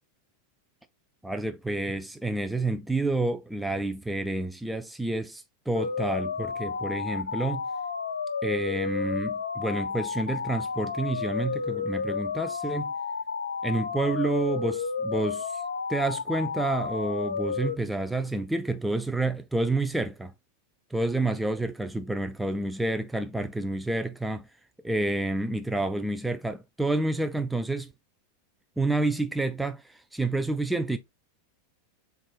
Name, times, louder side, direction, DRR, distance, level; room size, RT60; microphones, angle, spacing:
voice 1, 1.2-7.6 8.4-12.9 13.6-15.6 15.9-20.3 20.9-24.5 24.8-27.9 28.8-31.0, right 2 dB, 5° right, 0.4 m, -29 dB
sound 1, 5.7-17.7, left 5 dB, 75° left, 0.3 m, -31 dB
7.2 x 2.4 x 2.3 m
figure-of-eight pair, 90°, 0 cm